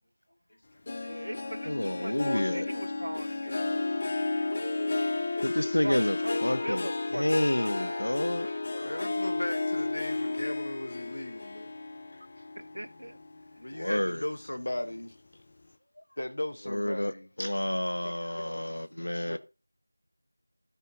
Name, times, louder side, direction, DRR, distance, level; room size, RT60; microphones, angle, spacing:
Harp, 0.9-13.6 14.0-14.4 14.9-15.0, left 2 dB, 15° left, 0.3 m, -33 dB
voice 1, 1.0-3.8 5.8-7.2 7.6-9.2 12.8-13.1, right 1 dB, 65° right, 0.6 m, -40 dB
voice 2, 1.7-2.7 5.4-6.9 7.1-8.5 13.8-14.2 16.7-19.4, left 1 dB, 70° left, 0.8 m, -29 dB
voice 3, 4.4-5.7 18.0-19.2, equal, 85° left, 1.2 m, -42 dB
voice 4, 8.8-11.7 13.6-15.2 16.2-17.3 19.3-19.4, left 1 dB, 40° left, 1.0 m, -36 dB
12.0 x 4.3 x 3.9 m
figure-of-eight pair, 180°, 0 cm